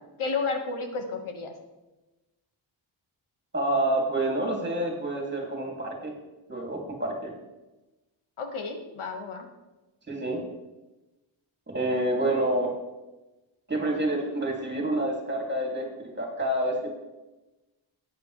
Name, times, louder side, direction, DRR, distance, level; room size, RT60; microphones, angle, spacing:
voice 1, 0.2-1.5 8.4-9.5, left 4 dB, 85° left, 5 dB, 1.6 m, -32 dB
voice 2, 3.5-6.1 6.5-7.3 10.1-10.4 11.7-12.7 13.7-16.9, right 1 dB, 20° right, 0 dB, 2.6 m, -28 dB
14.0 x 9.2 x 3.2 m, 1.1 s
wide cardioid pair, 125°, 48 cm